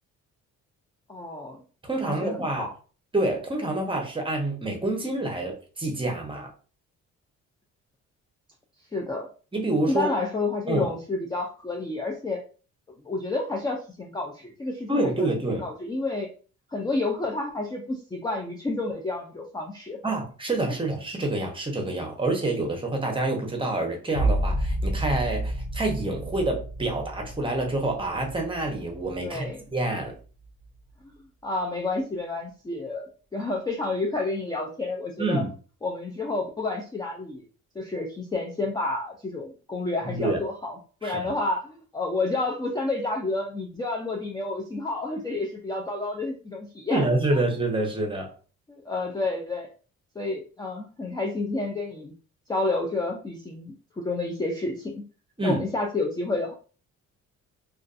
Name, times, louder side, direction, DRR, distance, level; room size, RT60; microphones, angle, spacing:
voice 1, 1.1-1.6 2.0-2.7 8.9-9.3 9.9-12.4 13.0-15.3 15.6-16.3 16.7-20.0 29.2-29.6 31.0-31.1 31.4-35.4 35.8-37.4 37.8-40.7 41.0-47.1 48.7-49.7 50.2-52.1 52.5-55.0 55.4-56.5, left 2 dB, 15° left, 0 dB, 0.4 m, -30 dB
voice 2, 1.8-2.7 3.1-6.5 9.5-10.1 10.7-10.9 14.9-15.7 20.0-30.1 35.2-35.5 40.0-40.4 41.0-41.3 46.9-48.3 55.4-55.6, right 2 dB, 15° right, 2 dB, 0.8 m, -27 dB
sound 1, 24.1-29.6 30.0-30.7, right 1 dB, 75° left, 0.7 m, -30 dB
2.4 x 2.4 x 2.4 m, 0.38 s
cardioid pair, 90°, 30 cm